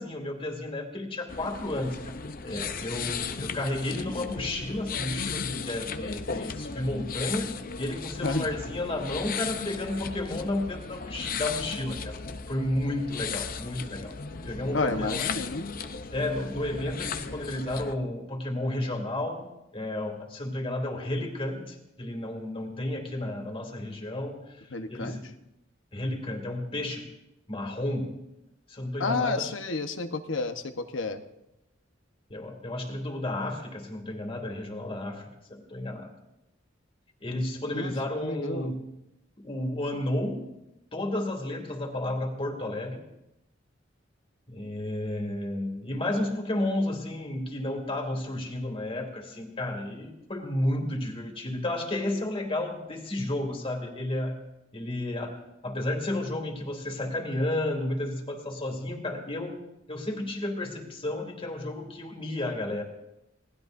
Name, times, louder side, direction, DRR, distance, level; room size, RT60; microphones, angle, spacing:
voice 1, 0.0-2.1 2.4-12.2 12.5-14.1 14.4-15.3 16.1-25.3 25.9-27.1 27.5-28.2 28.7-29.5 32.3-36.1 37.2-38.8 39.4-40.6 40.9-43.0 44.5-54.4 54.7-59.6 59.9-62.8, left 1 dB, 30° left, 3 dB, 2.6 m, -32 dB
sound 1, 1.3-17.9, left 5 dB, 50° left, 0.7 m, -36 dB
voice 2, 14.7-15.7 24.7-25.2 29.0-31.2 37.7-37.9 38.2-38.7, left 3 dB, 85° left, 8 dB, 1.2 m, -30 dB
27.0 x 19.0 x 2.7 m, 0.89 s
head